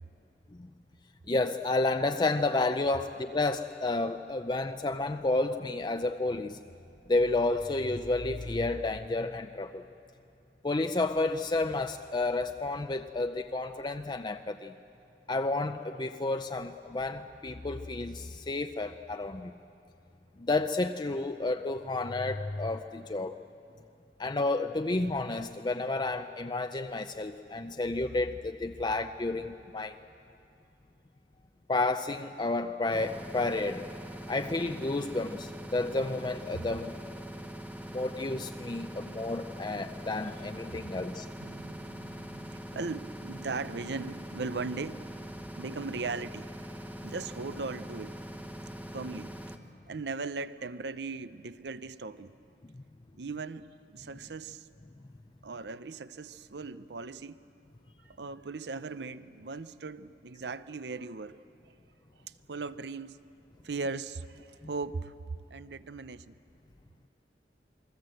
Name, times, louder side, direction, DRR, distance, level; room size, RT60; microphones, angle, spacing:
voice 1, 1.3-6.6 7.1-9.8 10.6-14.7 15.3-19.5 20.4-23.4 24.2-30.0 31.7-33.8 34.3-36.9 37.9-41.3 52.7-52.8, left 2 dB, 25° left, 7 dB, 0.5 m, -31 dB
sound 1, 32.9-49.6, equal, 10° right, 1.1 m, -43 dB
voice 2, 41.4-45.1 45.6-46.5 47.0-48.2 48.9-49.3 49.9-52.3 53.2-54.7 55.4-57.4 58.0-61.4 62.2-63.2 63.6-65.1 65.5-66.4, right 4 dB, 75° right, 14 dB, 0.7 m, -38 dB
29.0 x 22.0 x 7.8 m, 2.8 s
head